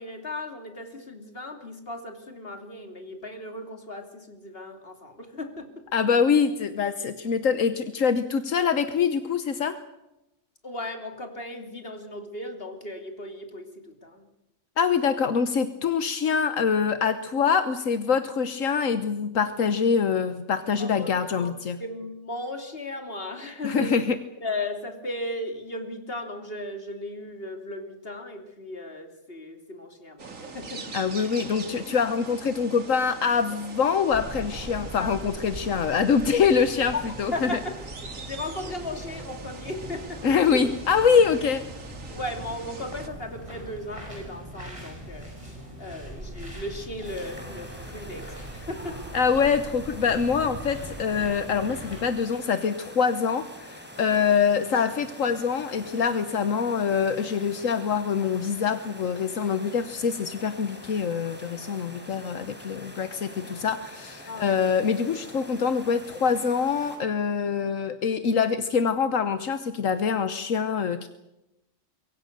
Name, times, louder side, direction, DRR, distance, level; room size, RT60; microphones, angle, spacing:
voice 1, 0.0-5.7 10.6-14.3 20.8-21.1 21.4-21.5 21.8-24.1 24.4-30.9 35.0-35.1 36.9-37.0 37.3-37.7 38.3-40.6 41.2-41.3 42.1-49.0 64.3-64.6, left 1 dB, 45° left, 5 dB, 3.3 m, -36 dB
voice 2, 5.9-9.8 14.8-21.8 23.6-24.1 30.9-37.6 40.2-41.6 49.1-71.1, left 6 dB, 80° left, 10 dB, 1.5 m, -24 dB
sound 1, 30.2-43.1, right 4 dB, 90° right, 2.4 m, -43 dB
sound 2, 34.1-52.1, right 1 dB, 25° right, 7.3 m, -41 dB
sound 3, 47.0-67.0, equal, 10° right, 4.9 m, -45 dB
25.5 x 23.0 x 6.8 m, 0.92 s
omnidirectional pair, 1.3 m